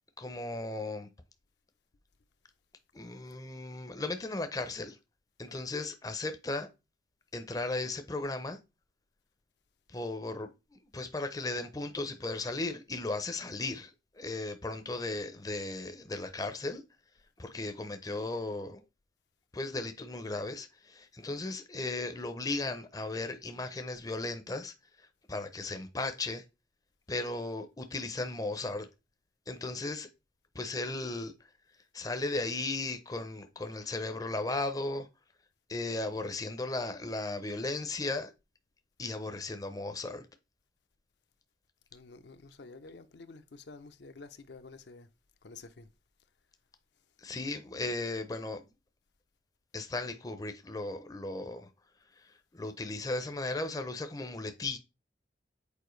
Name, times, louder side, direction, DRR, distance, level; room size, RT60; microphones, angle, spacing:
voice 1, 0.2-1.1 2.9-5.0 5.4-6.7 7.3-8.6 9.9-16.8 17.4-18.8 19.5-26.4 27.1-28.9 29.5-30.1 30.5-31.3 31.9-35.1 35.7-38.3 39.0-40.2 47.2-48.7 49.7-51.7 52.2-54.8, left 2 dB, 20° left, 0.5 m, -36 dB
voice 2, 41.9-45.1 45.4-45.9, left 3 dB, 65° left, 0.6 m, -50 dB
6.9 x 4.5 x 3.1 m
head